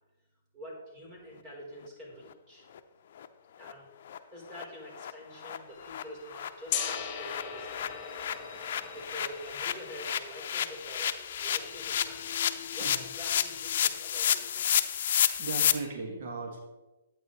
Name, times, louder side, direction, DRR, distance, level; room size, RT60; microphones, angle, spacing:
voice 1, 0.5-2.7 3.6-3.9 4.3-8.1 8.9-12.3 12.7-15.0, equal, 30° right, -1 dB, 3.8 m, -46 dB
sound 1, 2.7-2.8 3.2-3.3 3.6-3.7 4.1-4.2 4.5-4.6 4.9-5.1 5.4-5.6 5.8-15.7, left 9 dB, 60° left, 0.6 m, -31 dB
sound 2, 5.7-15.9, left 5 dB, 5° left, 1.8 m, -52 dB
Gong, 6.7-12.6, left 8 dB, 30° left, 1.5 m, -40 dB
voice 2, 15.4-16.6, right 4 dB, 60° right, 1 dB, 1.8 m, -37 dB
11.5 x 8.8 x 3.2 m, 1.1 s
hypercardioid pair, 145°, 0 cm